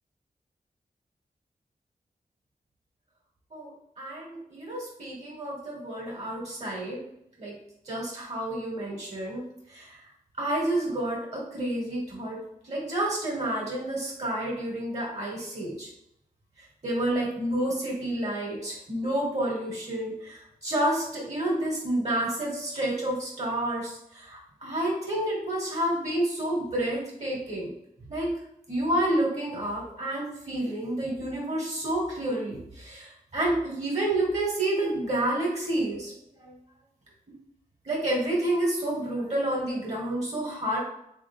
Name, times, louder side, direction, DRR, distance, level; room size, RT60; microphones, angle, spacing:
voice 1, 4.0-7.0 7.4-7.6 7.9-9.4 9.7-10.0 10.4-12.4 12.7-15.9 16.8-27.7 28.1-28.3 28.7-36.1 36.4-36.5 37.8-40.8, right 1 dB, 45° right, -3 dB, 1.6 m, -29 dB
3.6 x 3.4 x 3.6 m, 0.76 s
wide cardioid pair, 90°, 15 cm